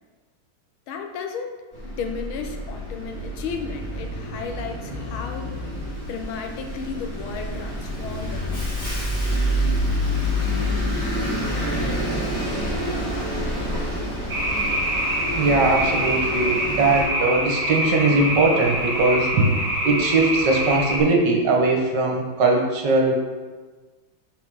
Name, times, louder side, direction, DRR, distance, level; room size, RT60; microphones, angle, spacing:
voice 1, 0.9-1.6 1.8-5.5 6.0-8.9, left 5 dB, 85° left, 4 dB, 1.7 m, -34 dB
Bus, 1.7-17.0, equal, 10° left, 2.5 m, -27 dB
sound 1, 14.3-21.0, right 1 dB, 25° right, 1.9 m, -25 dB
voice 2, 15.3-19.5 19.8-23.1, right 3 dB, 65° right, 0 dB, 1.7 m, -20 dB
8.1 x 4.6 x 4.7 m, 1.3 s
omnidirectional pair, 2.2 m